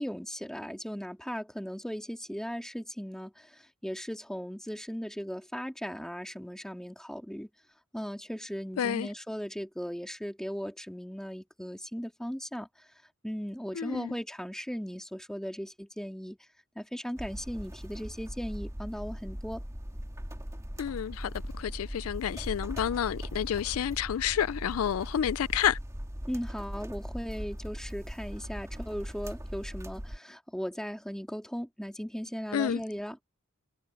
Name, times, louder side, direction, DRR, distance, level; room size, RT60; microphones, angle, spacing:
voice 1, 0.0-7.5 7.9-12.9 13.2-16.4 16.8-19.6 26.3-33.2, equal, 5° left, 2.3 m, -37 dB
voice 2, 8.8-9.1 13.7-14.1 20.8-25.8 32.5-32.8, left 9 dB, 80° left, 0.4 m, -30 dB
sound 1, 17.2-30.2, equal, 15° right, 2.0 m, -40 dB
head